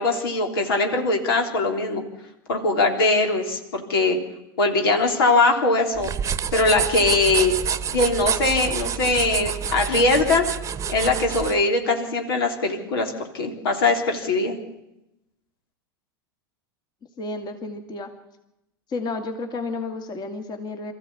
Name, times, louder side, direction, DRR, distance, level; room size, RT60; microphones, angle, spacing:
voice 1, 0.0-2.0 2.5-4.2 4.6-6.1 6.5-7.5 7.9-10.5 10.9-14.6, left 3 dB, 80° left, 4 dB, 3.3 m, -21 dB
sound 1, 6.0-11.6, right 8 dB, 25° right, 1.0 m, -27 dB
voice 2, 17.2-18.1 18.9-20.9, left 3 dB, 35° left, 6 dB, 2.4 m, -31 dB
23.0 x 14.5 x 8.5 m, 0.91 s
hypercardioid pair, 100°, 12 cm